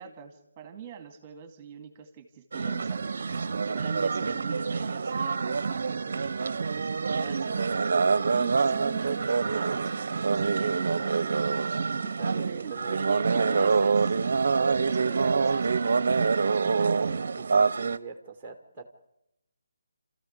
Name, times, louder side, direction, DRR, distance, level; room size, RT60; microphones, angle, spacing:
voice 1, 0.0-7.9 8.3-11.5 11.9-12.1 12.5-14.0 14.8-17.1, right 7 dB, 20° right, 8 dB, 2.2 m, -44 dB
sound 1, 2.5-18.0, right 5 dB, 55° right, 0.8 m, -26 dB
voice 2, 12.2-13.0 13.3-13.8 17.4-18.8, right 3 dB, 5° right, 5 dB, 1.9 m, -41 dB
27.5 x 14.0 x 8.2 m, 0.86 s
figure-of-eight pair, 160°, 0 cm